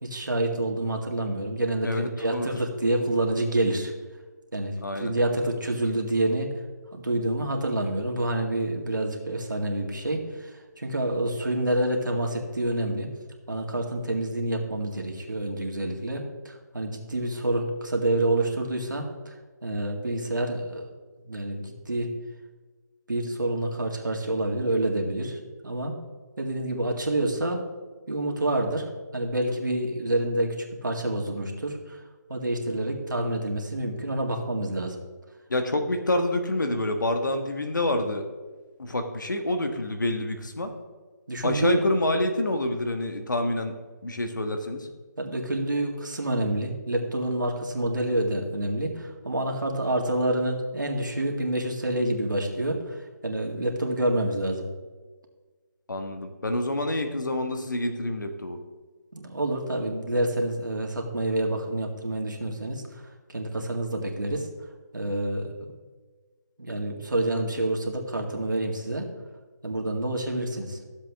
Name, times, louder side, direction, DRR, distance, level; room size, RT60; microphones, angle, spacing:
voice 1, 0.0-3.9 4.5-6.5 6.9-13.1 13.5-19.3 19.6-20.9 21.3-22.1 23.1-25.9 26.4-27.6 28.1-30.5 30.8-32.0 32.3-35.0 41.3-41.8 45.2-54.7 59.1-62.8 63.3-64.5 64.9-65.5 66.6-69.1 69.6-70.8, right 1 dB, 90° right, 2 dB, 2.0 m, -28 dB
voice 2, 1.8-2.5 4.8-5.1 35.5-38.2 38.8-40.7 41.4-43.7 44.0-44.9 55.9-58.6, left 1 dB, 80° left, 6 dB, 1.5 m, -27 dB
13.5 x 7.4 x 3.5 m, 1.4 s
figure-of-eight pair, 160°, 10 cm